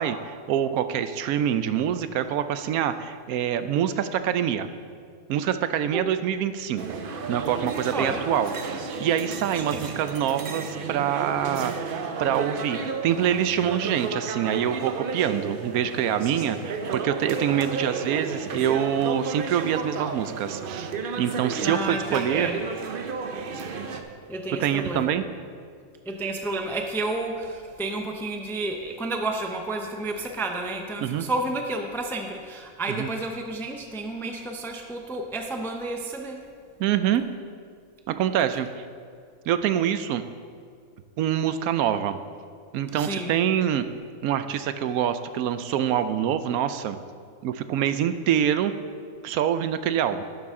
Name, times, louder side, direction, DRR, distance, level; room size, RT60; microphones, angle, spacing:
voice 1, 0.0-4.7 5.3-7.0 7.3-11.9 12.2-20.9 21.2-22.5 24.6-25.2 31.0-31.3 32.9-33.1 36.8-37.2 38.1-38.7 39.5-40.2 41.2-42.2 42.7-43.8 44.2-47.0 47.4-48.7 49.2-50.2, right 9 dB, 80° right, 11 dB, 1.0 m, -25 dB
sound 1, 6.8-24.0, right 5 dB, 50° right, 0.7 m, -33 dB
voice 2, 7.9-8.2 9.5-9.8 21.6-22.6 24.3-25.1 26.1-36.4 42.9-43.3, right 2 dB, 5° left, 3 dB, 0.3 m, -31 dB
11.5 x 8.9 x 3.7 m, 2.1 s
omnidirectional pair, 1.5 m